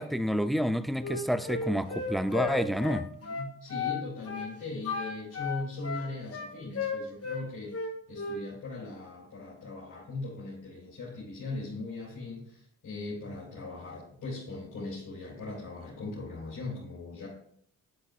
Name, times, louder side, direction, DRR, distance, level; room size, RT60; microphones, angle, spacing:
voice 1, 0.0-3.1, equal, ahead, 0.5 m, -29 dB
Wind instrument woodwind instrument, 1.0-4.0 4.3-4.5 4.8-7.4 7.7-8.4, left 5 dB, 45° left, 1.9 m, -34 dB
voice 2, 3.2-7.7 8.1-17.3, left 2 dB, 65° left, 2.9 m, -39 dB
8.7 x 7.9 x 2.4 m
supercardioid pair, 55°, 34 cm